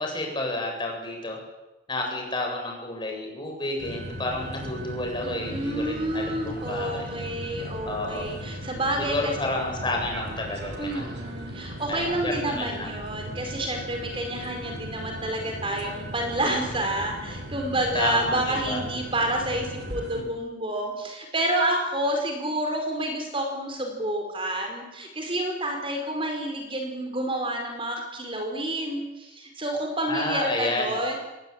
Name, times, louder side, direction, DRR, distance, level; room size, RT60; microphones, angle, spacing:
voice 1, 0.0-1.4 1.9-7.2 7.8-8.3 9.0-11.1 11.9-13.0 17.9-18.8 30.1-31.0, left 2 dB, 25° left, 1 dB, 7.8 m, -30 dB
sound 1, 3.8-20.2, equal, 70° right, 5.5 m, -37 dB
voice 2, 5.2-9.3 10.8-31.2, right 1 dB, 30° right, 3 dB, 4.8 m, -29 dB
27.0 x 21.0 x 9.0 m, 1.0 s
head